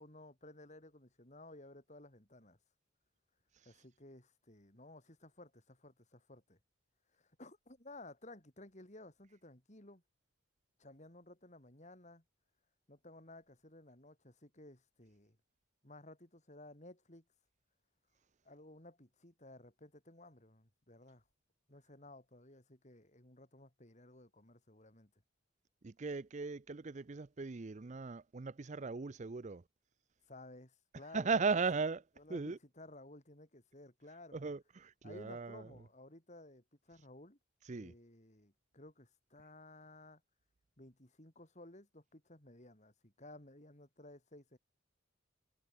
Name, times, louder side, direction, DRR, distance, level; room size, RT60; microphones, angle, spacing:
voice 1, 0.0-2.6 3.7-6.6 7.1-10.0 10.8-12.2 12.9-15.4 15.8-17.2 18.4-21.2 21.7-25.1 30.3-31.4 32.2-34.4 35.0-37.4 37.7-40.2 40.8-44.6, left 2 dB, 35° left, 4.0 m, -56 dB
voice 2, 25.8-29.6 31.1-32.0 32.3-32.6 34.3-35.6 37.7-37.9, right 4 dB, 35° right, 0.5 m, -37 dB
head